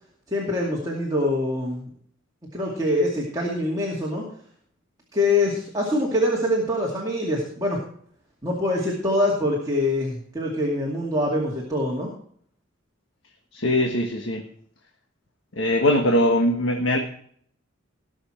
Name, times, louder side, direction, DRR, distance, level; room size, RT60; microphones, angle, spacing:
voice 1, 0.3-1.9 2.5-4.3 5.1-7.8 8.4-12.1, left 1 dB, 20° right, -3 dB, 2.4 m, -24 dB
voice 2, 13.5-14.4 15.5-17.0, left 1 dB, 75° left, 3 dB, 1.4 m, -21 dB
19.0 x 6.5 x 4.5 m, 0.63 s
head